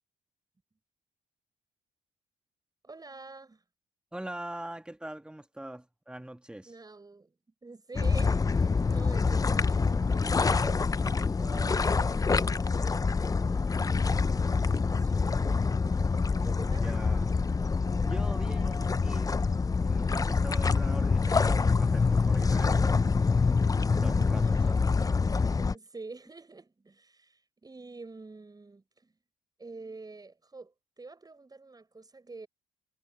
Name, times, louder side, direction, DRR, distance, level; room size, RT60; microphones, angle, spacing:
voice 1, 2.8-3.6 6.7-7.4 7.6-15.8 16.4-17.0 24.0-25.0 25.7-29.2 29.6-32.5, right 3 dB, 25° right, 7.6 m, -48 dB
voice 2, 4.1-6.7 16.8-17.3 18.0-19.5 19.8-23.0 23.9-24.9 25.4-25.5, right 1 dB, 5° right, 1.8 m, -42 dB
sound 1, 7.9-25.7, left 4 dB, 20° left, 0.6 m, -26 dB
supercardioid pair, 65°, 16 cm